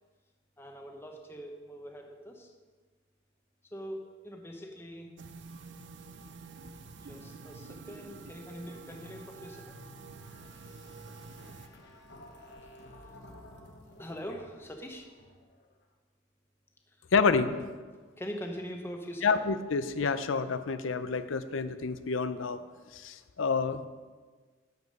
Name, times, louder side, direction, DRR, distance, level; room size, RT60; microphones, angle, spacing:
voice 1, 0.6-2.5 3.7-5.1 7.0-9.8 14.0-15.1 18.2-19.4, equal, 10° left, 3 dB, 0.9 m, -42 dB
sound 1, 5.2-11.7, right 4 dB, 60° right, 0.6 m, -48 dB
sound 2, 8.9-15.7, left 1 dB, 55° left, 1.2 m, -53 dB
voice 2, 17.1-17.6 19.2-22.6 22.9-23.8, left 5 dB, 75° left, 12 dB, 0.6 m, -28 dB
9.4 x 7.2 x 5.4 m, 1.4 s
head